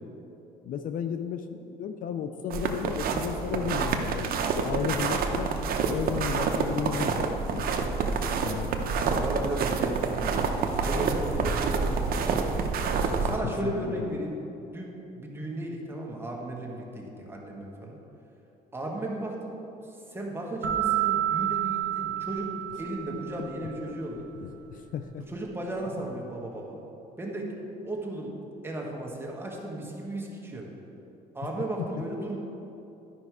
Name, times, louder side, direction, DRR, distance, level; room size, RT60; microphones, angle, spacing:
voice 1, 0.6-5.5 5.9-7.7 8.4-8.9 13.1-13.3 13.6-14.2 23.4-25.3, left 7 dB, 55° left, 8 dB, 0.5 m, -34 dB
sound 1, 2.5-13.4, right 5 dB, 60° right, 0.7 m, -28 dB
voice 2, 8.9-12.4 12.9-18.0 18.7-22.5 22.8-24.3 25.3-26.9 27.2-27.6 27.8-28.3 28.6-30.7 31.3-32.4, right 1 dB, 15° right, -1 dB, 1.4 m, -35 dB
sound 2, 20.6-23.4, right 12 dB, 80° right, 1.1 m, -29 dB
11.5 x 5.3 x 4.7 m, 3.0 s
cardioid pair, 110°, 17 cm